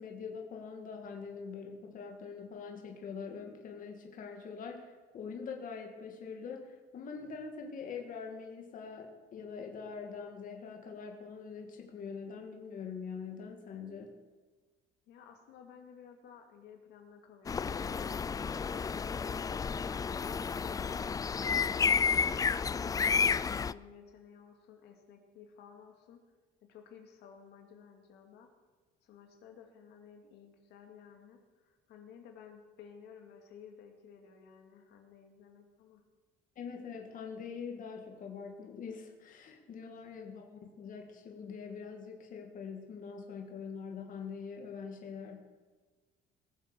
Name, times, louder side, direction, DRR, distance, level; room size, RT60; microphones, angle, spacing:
voice 1, 0.0-14.1 21.8-21.9 36.6-45.4, left 5 dB, 50° left, 2 dB, 1.9 m, -44 dB
voice 2, 15.1-26.2 26.6-28.5 29.0-36.0 39.9-40.0, left 7 dB, 80° left, 3 dB, 2.3 m, -55 dB
sound 1, 17.5-23.7, left 6 dB, 20° left, 0.3 m, -31 dB
19.5 x 7.4 x 6.7 m, 1.4 s
cardioid pair, 110°, 17 cm